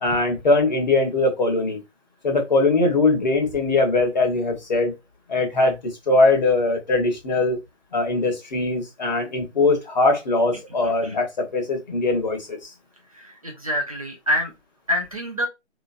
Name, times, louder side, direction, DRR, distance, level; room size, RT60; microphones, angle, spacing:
voice 1, 0.0-1.8 2.2-5.0 5.3-5.8 6.1-7.6 7.9-12.7, left 2 dB, 35° left, 1.0 m, -21 dB
voice 2, 13.1-14.5 14.9-15.5, equal, 30° right, 0.6 m, -26 dB
3.2 x 2.9 x 2.5 m
figure-of-eight pair, 155°, 36 cm